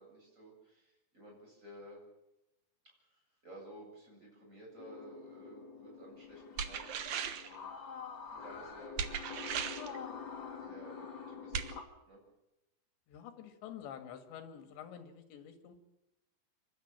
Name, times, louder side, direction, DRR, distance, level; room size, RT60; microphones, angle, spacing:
voice 1, 0.0-2.0 2.8-7.7 8.3-9.0 10.6-12.2, right 1 dB, 15° right, -1 dB, 8.0 m, -54 dB
sound 1, 4.8-11.8, left 6 dB, 45° left, 1.7 m, -47 dB
sound 2, 6.6-7.6 9.0-10.0 11.5-11.7, right 7 dB, 85° right, 1.6 m, -37 dB
voice 2, 13.1-15.8, left 9 dB, 75° left, 7 dB, 4.1 m, -48 dB
26.5 x 13.0 x 8.9 m, 0.94 s
omnidirectional pair, 5.3 m